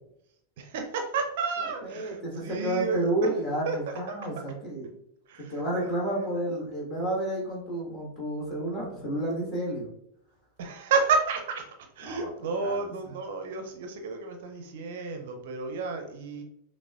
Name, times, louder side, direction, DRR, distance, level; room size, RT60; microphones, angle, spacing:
voice 1, 0.6-3.1 3.7-3.8 4.1-4.2 5.3-5.5 5.8-6.3 10.6-11.7 12.0-16.4, right 4 dB, 55° right, 5 dB, 0.5 m, -31 dB
voice 2, 1.6-4.9 5.5-9.9 12.0-12.3 12.6-13.1, right 1 dB, 20° left, -4 dB, 1.5 m, -31 dB
5.9 x 2.1 x 2.4 m, 0.77 s
figure-of-eight pair, 90°, 0 cm